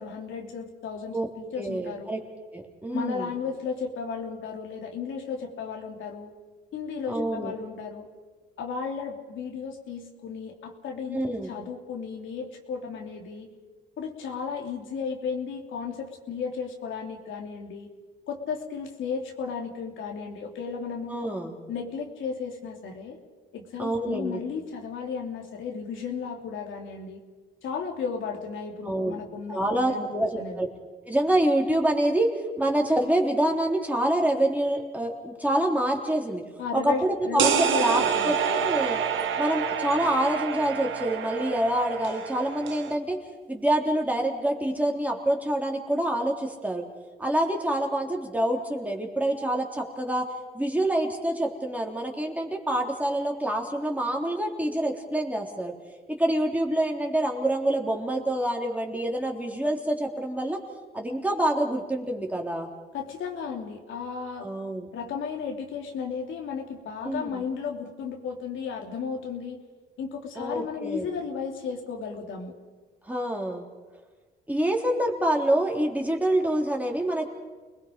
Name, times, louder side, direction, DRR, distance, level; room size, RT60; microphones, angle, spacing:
voice 1, 0.0-2.1 2.9-6.3 6.7-8.1 8.6-13.5 14.0-17.9 18.3-21.2 21.7-23.2 23.5-27.2 27.6-30.6 36.6-38.4 62.9-64.5 64.9-69.6 70.0-72.5, left 5 dB, 75° left, 1 dB, 3.1 m, -34 dB
voice 2, 1.6-2.2 2.5-3.3 7.1-7.5 11.1-11.5 21.1-21.6 23.8-24.4 28.8-29.2 29.5-30.7 31.1-32.3 32.6-36.4 36.7-39.0 39.4-43.2 43.5-46.8 47.2-50.2 50.5-55.7 56.1-60.6 60.9-62.7 64.4-64.9 67.0-67.4 70.4-71.1 73.1-73.7 74.5-77.3, right 1 dB, 5° right, 1 dB, 3.5 m, -26 dB
sound 1, 37.4-43.0, right 8 dB, 80° right, 1.6 m, -28 dB
30.0 x 20.5 x 5.3 m, 1.3 s
cardioid pair, 90°, 20 cm